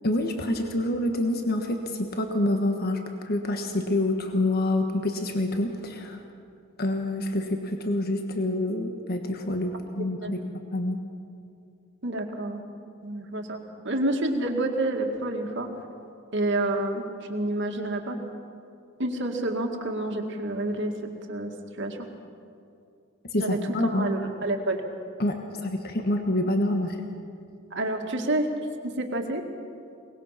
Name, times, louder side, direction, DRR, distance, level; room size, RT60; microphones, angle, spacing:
voice 1, 0.0-6.2 6.8-10.4 10.7-11.0 23.3-24.1 25.2-27.0, left 1 dB, 50° left, 4 dB, 1.3 m, -27 dB
voice 2, 10.0-10.3 12.0-12.6 13.0-15.7 16.3-17.0 17.3-18.2 19.0-20.9 21.3-21.5 21.8-22.0 23.4-24.8 27.7-28.5 28.8-29.4, right 1 dB, 65° right, 3 dB, 2.1 m, -28 dB
22.5 x 20.0 x 5.8 m, 2.5 s
head